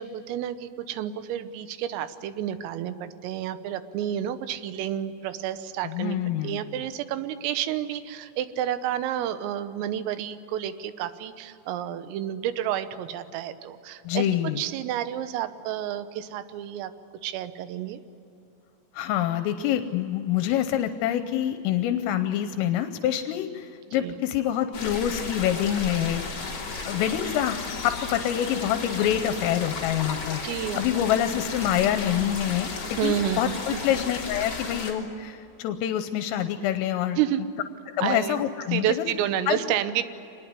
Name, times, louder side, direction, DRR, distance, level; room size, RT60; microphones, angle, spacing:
voice 1, 0.0-6.2 6.4-14.3 14.6-16.9 17.2-18.0 23.9-24.2 30.4-30.8 33.0-33.6 37.2-37.4 38.0-38.4 38.7-40.0, right 11 dB, 85° right, 11 dB, 3.7 m, -30 dB
voice 2, 5.8-6.6 14.1-14.6 18.9-37.2 38.0-39.1 39.5-39.6, left 11 dB, 85° left, 9 dB, 3.4 m, -26 dB
sound 1, 24.7-34.9, left 4 dB, 35° left, 3.5 m, -34 dB
25.5 x 20.0 x 9.6 m, 2.8 s
omnidirectional pair, 5.8 m